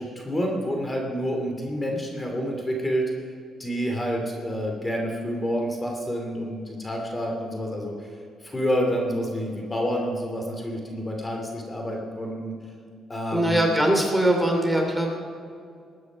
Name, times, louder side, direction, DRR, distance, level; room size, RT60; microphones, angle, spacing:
voice 1, 0.0-3.3 3.6-8.1 8.4-12.5 13.1-13.7, equal, 20° left, 1 dB, 2.7 m, -28 dB
voice 2, 13.3-15.1, right 1 dB, 5° right, 1 dB, 2.8 m, -21 dB
20.0 x 9.7 x 5.2 m, 2.3 s
cardioid pair, 90°, 0 cm